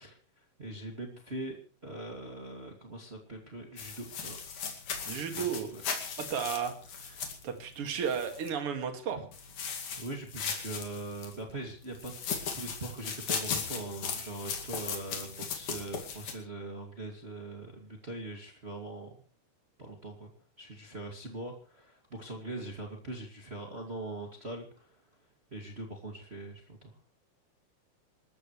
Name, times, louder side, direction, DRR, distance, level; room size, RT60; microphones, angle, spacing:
voice 1, 0.0-4.4 5.3-5.8 9.1-9.3 10.0-12.1 12.5-19.2 19.8-20.3 20.6-26.9, right 2 dB, 20° right, 2 dB, 2.3 m, -42 dB
sound 1, 3.8-8.5 9.3-11.4 12.0-16.3, left 6 dB, 65° left, 3.7 m, -37 dB
voice 2, 5.1-5.7 6.2-9.2, right 7 dB, 45° right, 5 dB, 2.9 m, -34 dB
27.0 x 14.0 x 3.3 m, 0.40 s
omnidirectional pair, 3.7 m